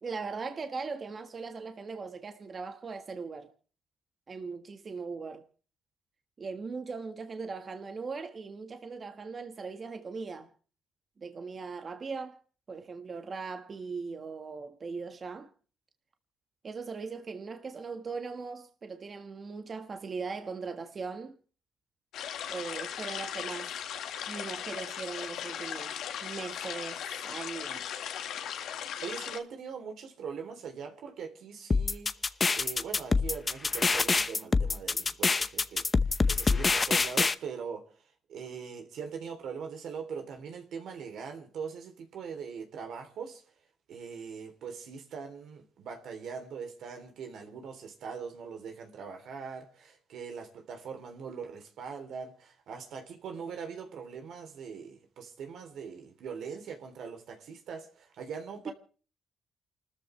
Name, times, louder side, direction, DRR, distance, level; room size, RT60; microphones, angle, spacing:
voice 1, 0.0-3.5 4.3-5.4 6.4-10.5 11.2-12.4 12.7-15.5 16.6-21.3 22.5-23.8 24.3-27.9 58.6-58.7, right 4 dB, 40° right, 1.5 m, -39 dB
sound 1, 22.1-29.4, left 9 dB, 85° left, 1.8 m, -38 dB
voice 2, 29.0-37.9 38.3-43.4 43.9-58.7, right 6 dB, 75° right, 3.3 m, -41 dB
sound 2, 31.7-37.3, left 4 dB, 25° left, 0.8 m, -26 dB
29.0 x 13.5 x 3.3 m
cardioid pair, 115°, 0 cm